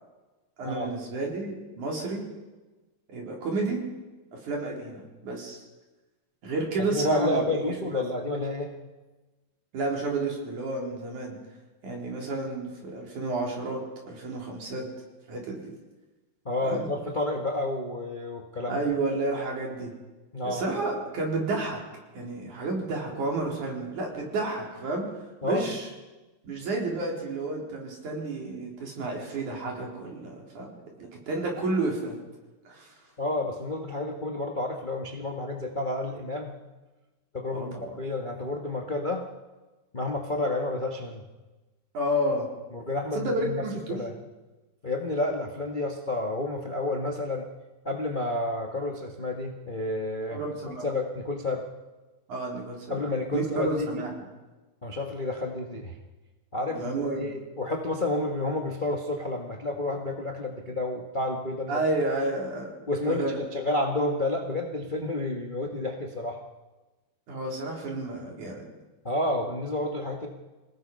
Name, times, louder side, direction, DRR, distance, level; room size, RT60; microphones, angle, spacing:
voice 1, 0.6-2.3 3.1-3.8 4.3-5.6 6.4-7.6 7.9-8.0 9.7-11.4 11.8-13.8 14.1-14.8 15.3-15.7 16.6-16.9 18.7-19.9 20.4-21.8 22.2-25.1 25.4-25.9 26.4-32.2 32.7-32.9 37.5-38.0 41.9-42.5 43.1-44.0 50.3-50.9 52.3-53.0 53.3-54.1 56.7-57.3 61.7-62.7 63.1-63.4 67.3-68.7, right 2 dB, 60° right, -1 dB, 5.4 m, -31 dB
voice 2, 6.8-8.8 16.4-18.8 20.3-20.7 25.4-25.6 33.2-36.6 37.3-39.2 39.9-41.2 42.7-44.1 44.8-47.5 47.8-51.7 52.9-54.1 54.8-56.0 56.5-61.8 62.9-66.4 69.0-70.3, left 2 dB, 70° left, 2 dB, 0.4 m, -30 dB
27.0 x 18.0 x 5.5 m, 1.2 s
omnidirectional pair, 4.0 m